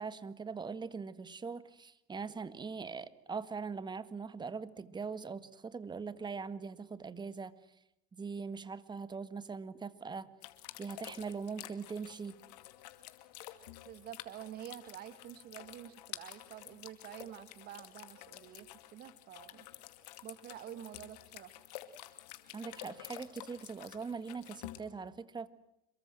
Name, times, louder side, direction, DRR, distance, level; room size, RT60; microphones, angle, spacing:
voice 1, 0.0-7.5 8.1-10.3 10.8-12.4 22.5-25.5, right 5 dB, 20° right, 14 dB, 1.7 m, -41 dB
sound 1, 10.4-24.8, left 15 dB, 85° left, 2.3 m, -50 dB
voice 2, 13.8-19.7 20.2-21.6, right 11 dB, 50° right, 13 dB, 2.0 m, -48 dB
27.0 x 23.0 x 7.7 m, 0.84 s
supercardioid pair, 100°, 20 cm